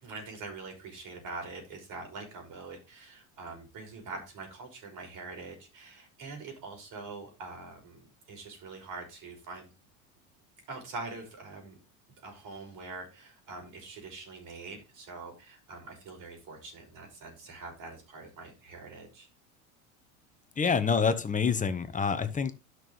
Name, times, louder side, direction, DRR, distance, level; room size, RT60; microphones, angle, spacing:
voice 1, 0.0-9.7 10.7-11.8 12.2-19.3, right 3 dB, 45° right, 5.9 m, -44 dB
voice 2, 20.6-22.5, left 6 dB, 20° left, 1.3 m, -27 dB
12.5 x 6.3 x 3.4 m
hypercardioid pair, 90°, 42 cm